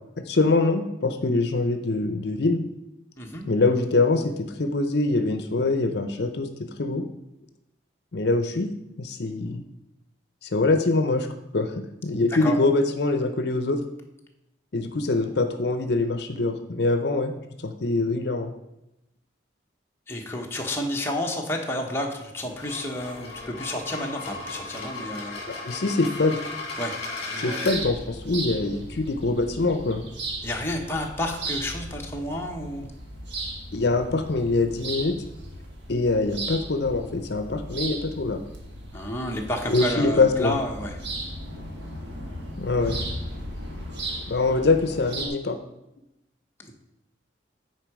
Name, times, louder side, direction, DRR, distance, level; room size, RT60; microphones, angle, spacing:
voice 1, 0.3-2.6 3.5-4.3 4.6-6.5 6.8-7.0 8.1-8.7 9.0-9.6 10.4-11.3 11.5-13.8 14.7-17.3 17.6-18.5 25.6-26.4 27.4-30.0 33.7-35.1 35.9-38.4 39.7-40.6 42.6-43.0 44.3-45.6, left 3 dB, 60° left, 7 dB, 0.6 m, -24 dB
voice 2, 20.1-25.4 26.8-26.9 27.3-27.7 30.4-32.9 38.9-40.9, left 1 dB, 15° left, 0 dB, 0.9 m, -30 dB
sound 1, 22.4-27.8, left 3 dB, 35° left, 1.8 m, -36 dB
sound 2, 27.6-45.3, right 2 dB, 70° right, 1.5 m, -36 dB
9.2 x 4.6 x 4.8 m, 0.90 s
head